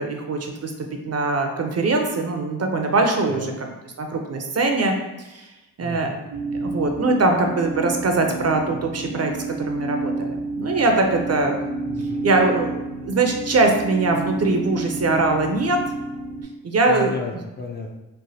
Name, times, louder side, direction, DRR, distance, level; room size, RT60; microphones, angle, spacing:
voice 1, 0.0-5.5 5.8-6.1 6.6-11.6 12.2-15.8 16.6-17.1, right 3 dB, 40° right, 3 dB, 0.4 m, -22 dB
voice 2, 3.3-3.6 5.8-6.2 11.9-12.3 16.9-17.9, left 3 dB, 25° left, 1 dB, 0.4 m, -32 dB
sound 1, 6.3-16.4, right 2 dB, 75° right, 0.8 m, -30 dB
3.1 x 2.1 x 2.7 m, 1.0 s
cardioid pair, 55°, 39 cm